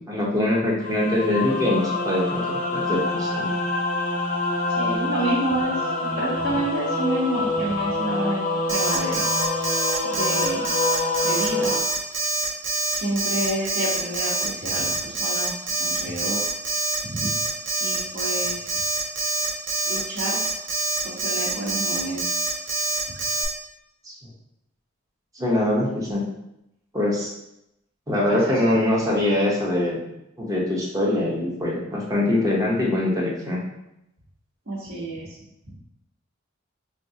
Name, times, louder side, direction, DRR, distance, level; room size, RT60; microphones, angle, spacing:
voice 1, 0.1-3.5 24.0-24.1 25.3-26.2 26.9-27.3 28.1-30.0 30.4-33.6, left 1 dB, 15° right, -3 dB, 0.8 m, -23 dB
sound 1, 0.8-11.8, left 2 dB, 40° left, 0.6 m, -26 dB
voice 2, 4.8-8.4 8.7-9.4 10.1-10.7 11.2-11.7 12.9-16.4 17.1-17.2 17.8-19.0 19.9-20.4 21.0-22.5 23.1-23.2 28.3-28.8 34.7-35.3 35.7-35.8, right 1 dB, 60° right, -9 dB, 1.0 m, -29 dB
Alarm, 8.7-23.4, right 2 dB, 80° right, 0.9 m, -25 dB
5.1 x 2.4 x 2.7 m, 0.84 s
head